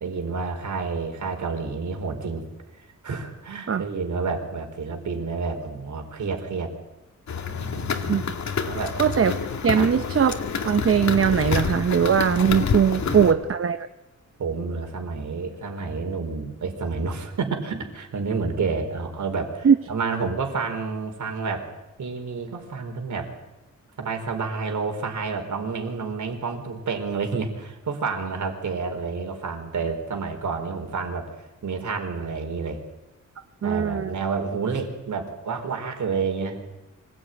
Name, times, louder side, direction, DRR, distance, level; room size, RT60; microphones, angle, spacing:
voice 1, 0.0-2.4 2.8-6.7 7.5-8.2 8.6-9.0 9.7-9.9 12.8-13.4 14.4-21.7 22.0-23.3 24.0-31.3 31.6-32.8 33.6-36.6, right 4 dB, 75° right, 5 dB, 4.5 m, -29 dB
sound 1, 7.3-13.3, left 6 dB, 65° left, 2.1 m, -28 dB
voice 2, 9.0-9.3 9.6-10.4 10.6-13.9 19.6-19.7 33.6-34.1, right 7 dB, 45° right, 9 dB, 0.8 m, -20 dB
25.5 x 18.5 x 9.4 m, 1.0 s
wide cardioid pair, 150°, 30 cm